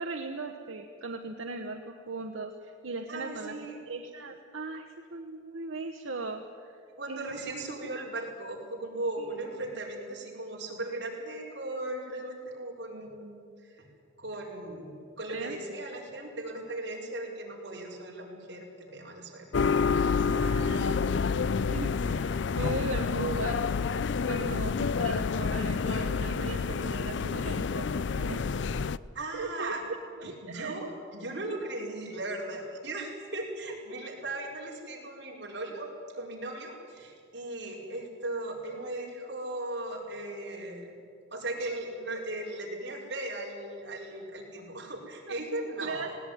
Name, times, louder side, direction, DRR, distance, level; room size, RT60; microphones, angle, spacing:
voice 1, 0.0-6.8 7.1-7.2 9.2-9.3 15.3-15.6 20.2-21.1 21.7-23.7 24.2-28.5 29.3-29.7 30.2-30.8 45.8-46.1, right 3 dB, 85° right, 4 dB, 1.1 m, -38 dB
voice 2, 3.1-3.8 7.0-13.9 14.2-19.7 20.4-20.5 22.5-22.7 29.1-29.8 30.2-35.9 36.1-40.9 41.3-46.2, right 2 dB, 60° right, -2 dB, 5.1 m, -37 dB
sound 1, 19.5-29.0, left 5 dB, 65° left, 0.4 m, -28 dB
19.5 x 18.0 x 9.4 m, 2.3 s
head